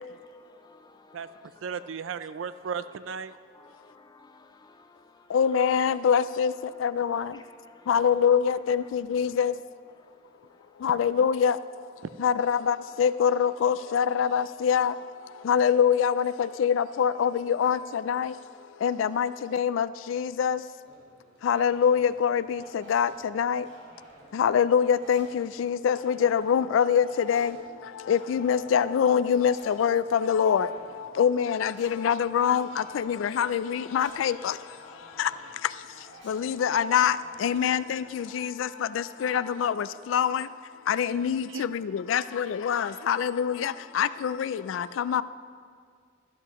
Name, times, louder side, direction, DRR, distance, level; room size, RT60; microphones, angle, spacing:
voice 1, 0.1-1.9 2.6-2.9 3.3-5.5 6.5-7.0 7.3-8.1 8.8-8.9 9.3-9.4 9.9-10.9, left 3 dB, 20° left, 7 dB, 0.5 m, -57 dB
voice 2, 1.6-3.3 41.5-41.7, right 6 dB, 85° right, 14 dB, 0.4 m, -35 dB
voice 3, 5.3-6.5 6.8-7.4 7.9-9.5 10.8-11.6 12.2-14.9 15.4-18.3 18.8-20.6 21.4-23.7 24.3-27.6 28.1-30.7 31.0-34.6 35.2-35.3 36.3-40.5 40.9-45.2, left 7 dB, 80° left, 16 dB, 0.3 m, -25 dB
sound 1, 20.8-38.3, right 1 dB, 65° right, 2.8 m, -52 dB
13.0 x 11.5 x 3.0 m, 2.1 s
head